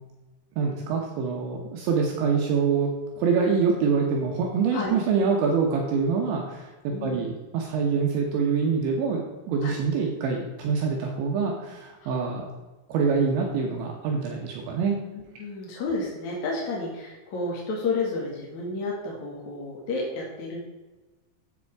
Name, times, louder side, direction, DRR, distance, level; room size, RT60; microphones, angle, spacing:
voice 1, 0.6-2.9 3.2-12.5 12.9-15.0, right 5 dB, 70° right, 0 dB, 3.2 m, -25 dB
voice 2, 6.9-7.2 9.6-9.8 12.0-12.1 15.1-20.6, left 3 dB, 50° left, -3 dB, 2.4 m, -31 dB
9.9 x 8.3 x 4.7 m, 1.2 s
omnidirectional pair, 5.9 m